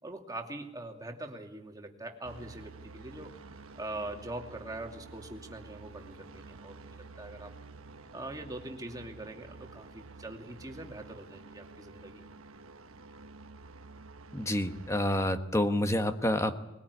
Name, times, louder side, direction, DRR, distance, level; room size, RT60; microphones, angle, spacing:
voice 1, 0.0-7.5 8.1-12.3, right 2 dB, 15° right, 3 dB, 2.5 m, -43 dB
sound 1, 2.2-15.3, right 3 dB, 70° right, 1.2 m, -50 dB
voice 2, 14.3-16.6, left 1 dB, 15° left, 8 dB, 1.2 m, -28 dB
21.0 x 20.5 x 9.7 m, 0.96 s
head